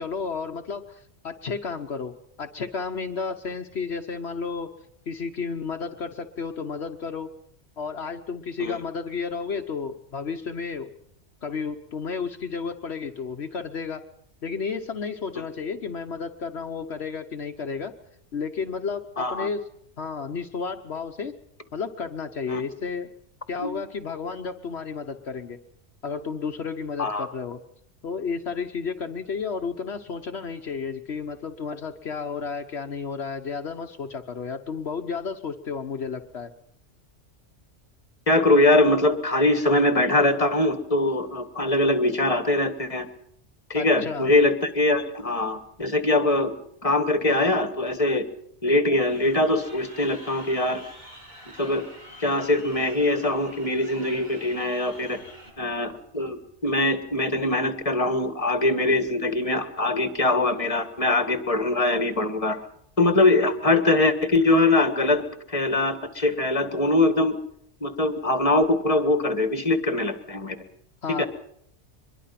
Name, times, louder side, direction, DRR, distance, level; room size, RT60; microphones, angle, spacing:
voice 1, 0.0-4.7 5.1-7.3 7.8-10.9 11.4-14.0 14.4-17.9 18.3-19.6 20.0-21.3 21.7-23.1 23.5-25.6 26.0-27.6 28.0-36.5 43.7-44.3 71.0-71.2, left 5 dB, 65° left, 6 dB, 1.3 m, -32 dB
voice 2, 19.2-19.5 22.5-22.6 23.6-23.7 27.0-27.3 38.3-43.1 43.7-46.6 46.8-48.3 48.6-50.8 51.6-51.8 52.2-55.2 55.6-62.6 63.0-65.2 65.5-67.4 67.8-70.6 71.2-71.3, left 2 dB, 30° left, 9 dB, 2.0 m, -22 dB
Crowd, 49.0-55.5, equal, 40° right, 7.3 m, -46 dB
24.0 x 22.0 x 5.9 m, 0.73 s
omnidirectional pair, 1.2 m